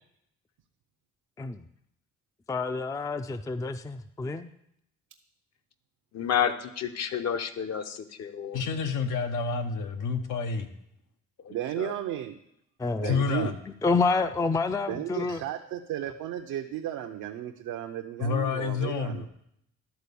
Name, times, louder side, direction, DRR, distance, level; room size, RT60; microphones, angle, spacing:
voice 1, 2.5-4.5 12.8-15.4, left 3 dB, 10° left, 9 dB, 0.4 m, -29 dB
voice 2, 6.1-8.6 11.4-11.9, left 8 dB, 60° left, 9 dB, 0.9 m, -30 dB
voice 3, 8.5-10.7 13.0-13.5 18.2-19.3, left 5 dB, 85° left, 6 dB, 1.1 m, -29 dB
voice 4, 11.5-12.4 13.0-13.5 14.9-19.3, right 11 dB, 80° right, 4 dB, 0.7 m, -34 dB
11.5 x 4.1 x 6.9 m, 0.76 s
cardioid pair, 90°, 30 cm